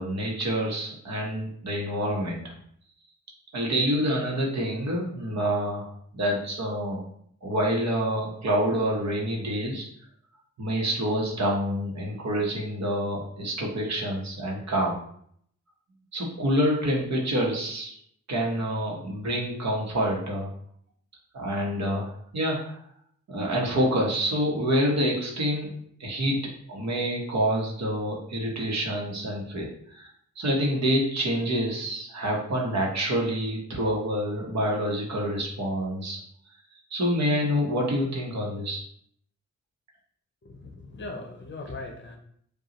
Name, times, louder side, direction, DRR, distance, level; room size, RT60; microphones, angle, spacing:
voice 1, 0.0-2.5 3.5-7.0 7.4-9.8 10.6-15.0 16.1-17.9 18.3-20.5 21.3-22.8 23.3-25.7 26.0-30.1 30.4-36.2 36.9-38.8, equal, 65° right, -2 dB, 1.1 m, -27 dB
voice 2, 40.4-42.2, left 2 dB, 40° left, 3 dB, 0.7 m, -39 dB
5.1 x 2.4 x 2.9 m, 0.65 s
wide cardioid pair, 145°, 29 cm